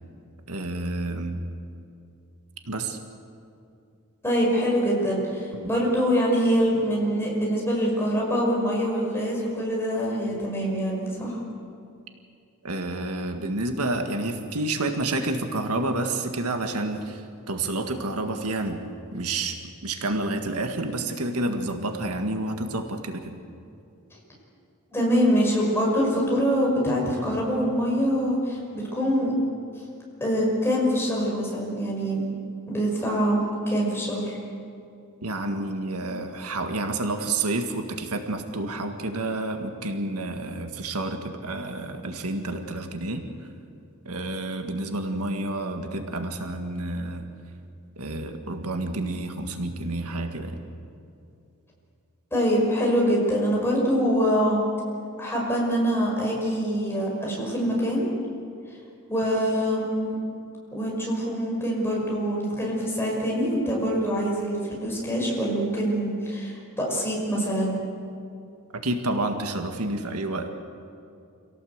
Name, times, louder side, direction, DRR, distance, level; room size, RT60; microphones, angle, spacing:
voice 1, 0.5-1.4 2.6-3.0 5.5-5.7 12.6-18.8 19.1-19.6 19.8-23.4 35.2-43.5 44.1-47.3 48.0-50.6 68.7-70.6, right 2 dB, 80° right, 5 dB, 1.8 m, -29 dB
voice 2, 4.2-11.4 24.9-29.3 30.2-32.2 32.7-33.4 33.7-34.4 52.3-54.6 55.2-58.1 59.1-60.2 60.7-67.7, equal, 10° left, -3 dB, 5.9 m, -24 dB
26.5 x 17.5 x 8.1 m, 2.6 s
head